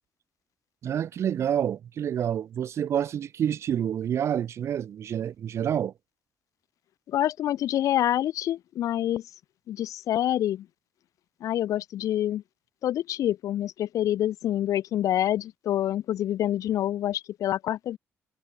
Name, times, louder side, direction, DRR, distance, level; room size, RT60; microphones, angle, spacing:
voice 1, 0.8-5.9, right 9 dB, 55° right, 2.0 m, -28 dB
voice 2, 7.1-9.3 9.7-10.7 11.4-12.4 12.8-18.0, left 12 dB, 75° left, 1.7 m, -27 dB
cardioid pair, 170°, 6 cm